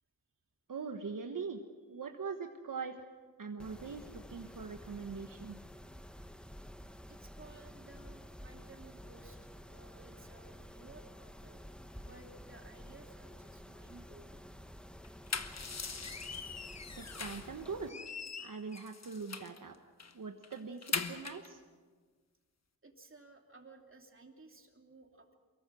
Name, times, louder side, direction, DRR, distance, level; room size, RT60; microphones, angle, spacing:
voice 1, 0.7-1.6 1.9-3.1 3.4-5.6 17.0-19.8 20.1-21.6, right 5 dB, 65° right, 4 dB, 1.4 m, -42 dB
Mechanisms, 3.6-17.9, equal, 5° left, 1.0 m, -51 dB
voice 2, 7.1-11.6 12.0-14.4 22.8-25.4, right 3 dB, 35° right, 2 dB, 2.9 m, -57 dB
sound 1, 15.0-17.5 17.9-19.6 20.0-20.1 20.4-21.5, left 5 dB, 50° left, 1.3 m, -41 dB
24.0 x 22.0 x 6.3 m, 1.5 s
wide cardioid pair, 80°, 35 cm